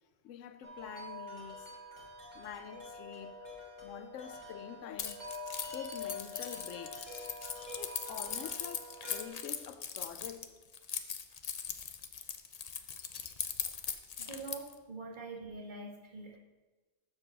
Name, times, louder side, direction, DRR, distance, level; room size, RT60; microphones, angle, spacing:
voice 1, 0.2-1.7 2.3-3.4 3.8-5.2 5.7-7.2 7.8-10.4, left 9 dB, 80° left, 1.0 m, -46 dB
Wind chime, 0.6-9.3, left 2 dB, 15° right, 3.2 m, -46 dB
Keys jangling, 5.0-14.7, left 7 dB, 50° left, 0.4 m, -40 dB
voice 2, 14.2-16.4, right 3 dB, 40° right, 1.7 m, -44 dB
7.1 x 5.8 x 6.8 m
omnidirectional pair, 1.3 m